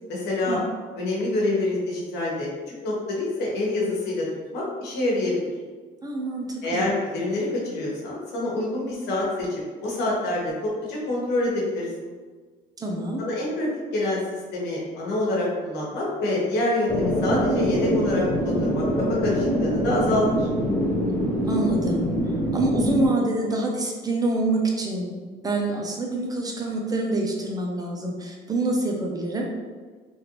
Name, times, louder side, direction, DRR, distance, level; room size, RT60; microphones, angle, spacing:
voice 1, 0.1-0.6 1.0-4.3 4.5-5.4 6.6-9.5 9.8-12.1 13.2-20.5, left 1 dB, 80° left, -4 dB, 1.1 m, -26 dB
voice 2, 6.0-6.9 12.8-13.2 21.4-25.1 25.4-29.5, right 2 dB, 20° right, 0 dB, 0.5 m, -26 dB
sound 1, 16.9-23.1, equal, 10° left, 0.9 m, -24 dB
3.1 x 2.5 x 2.9 m, 1.4 s
cardioid pair, 110°, 17 cm